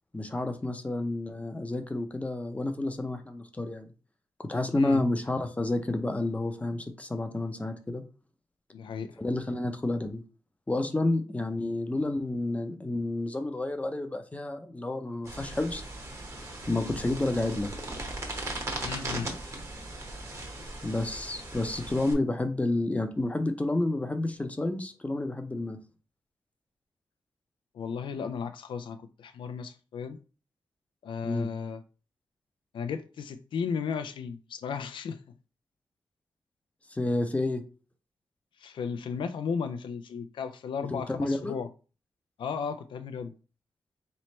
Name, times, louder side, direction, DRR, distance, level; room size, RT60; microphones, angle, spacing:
voice 1, 0.1-3.9 4.4-8.0 9.2-10.2 10.7-15.8 16.7-17.7 20.8-25.8 31.2-31.5 36.9-37.6 40.9-41.5, left 2 dB, 15° left, 0.6 m, -30 dB
voice 2, 4.7-5.0 8.7-9.2 18.8-19.3 27.7-30.2 31.0-31.8 32.7-35.2 38.6-41.7 42.4-43.3, left 6 dB, 80° left, 0.4 m, -35 dB
sound 1, 15.3-22.1, right 2 dB, 35° right, 1.0 m, -38 dB
3.2 x 3.0 x 4.2 m
wide cardioid pair, 120°, 8 cm